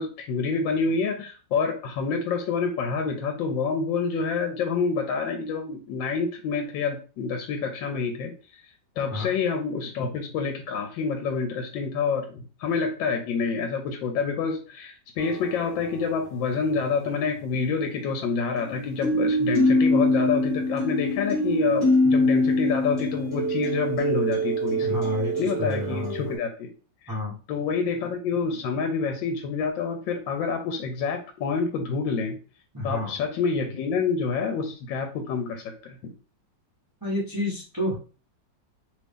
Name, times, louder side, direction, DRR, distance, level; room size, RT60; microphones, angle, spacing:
voice 1, 0.0-8.6 9.0-25.0 25.4-26.7 27.0-27.1 27.5-32.4 32.8-36.0, left 5 dB, 85° left, 4 dB, 1.3 m, -27 dB
sound 1, 15.2-16.0 18.6-26.4, left 1 dB, ahead, 1.4 m, -24 dB
voice 2, 24.8-26.3 27.1-27.3 32.7-33.1 37.0-37.9, left 1 dB, 15° right, -6 dB, 0.8 m, -30 dB
2.9 x 2.7 x 3.4 m, 0.36 s
omnidirectional pair, 2.0 m